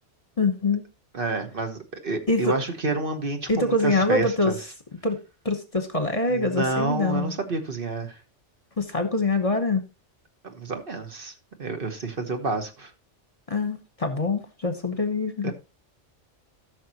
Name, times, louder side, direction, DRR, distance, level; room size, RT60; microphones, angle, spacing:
voice 1, 0.4-0.8 2.3-2.5 3.5-4.5 5.0-5.2 5.4-7.3 8.8-9.8 13.5-15.5, left 2 dB, 30° left, 1.1 m, -24 dB
voice 2, 1.1-4.6 6.3-8.2 10.4-11.3 11.6-12.9 15.4-15.5, right 3 dB, 50° right, 1.3 m, -29 dB
14.5 x 6.2 x 2.9 m
omnidirectional pair, 1.2 m